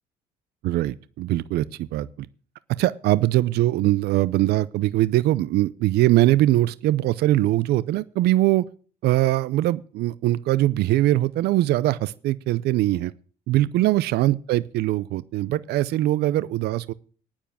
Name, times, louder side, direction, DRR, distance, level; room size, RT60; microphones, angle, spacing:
voice 1, 0.6-2.3 2.8-8.7 9.0-13.1 13.5-16.9, right 15 dB, 75° right, 0.5 m, -22 dB
9.3 x 7.2 x 8.7 m
cardioid pair, 110°, 17 cm